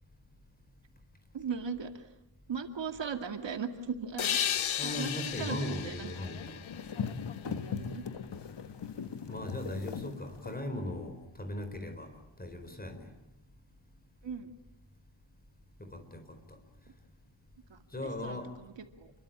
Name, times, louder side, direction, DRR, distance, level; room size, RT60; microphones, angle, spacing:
voice 1, 1.3-2.0 2.5-4.4 4.8-6.1 7.4-8.1 14.2-14.5 17.7-17.8 18.2-19.1, right 6 dB, 65° right, 6 dB, 2.3 m, -38 dB
sound 1, 4.2-7.7, left 10 dB, 90° left, 1.0 m, -35 dB
voice 2, 4.8-6.6 9.3-12.1 12.4-13.1 15.8-16.6 17.9-18.5, left 1 dB, 20° left, 7 dB, 4.5 m, -38 dB
sound 2, 5.3-10.6, left 6 dB, 60° left, 1.6 m, -40 dB
29.0 x 22.5 x 8.9 m, 0.90 s
wide cardioid pair, 155°, 47 cm